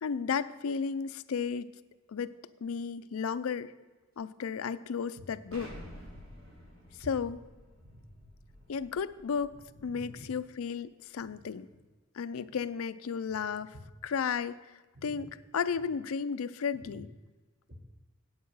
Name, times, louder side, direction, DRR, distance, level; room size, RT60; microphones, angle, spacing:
voice 1, 0.0-1.7 2.1-2.3 2.6-3.7 4.2-5.7 7.0-7.4 8.7-11.7 12.1-13.7 14.0-14.6 15.0-17.1, left 6 dB, 90° left, 14 dB, 0.4 m, -33 dB
Explosion, 5.5-10.2, equal, 75° right, 3.0 m, -51 dB
voice 2, 7.8-8.3 9.5-10.3 11.2-11.5 14.9-15.3 16.7-17.0 17.7-17.8, equal, 45° right, 2 dB, 1.7 m, -51 dB
8.7 x 8.5 x 5.5 m, 1.2 s
head